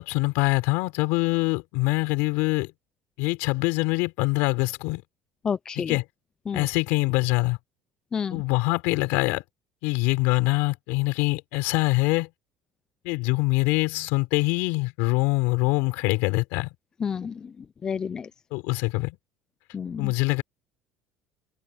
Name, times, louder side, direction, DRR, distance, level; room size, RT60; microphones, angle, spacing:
voice 1, 0.0-2.7 3.2-5.0 5.7-6.0 6.5-7.6 8.3-9.4 9.8-12.3 13.0-16.7 18.5-19.2 20.0-20.4, left 23 dB, 75° left, 4.5 m, -24 dB
voice 2, 5.4-5.9 6.5-6.6 8.1-8.4 17.0-17.3 17.8-18.3 19.7-20.1, left 6 dB, 20° left, 0.4 m, -29 dB
cardioid pair, 175°, 4 cm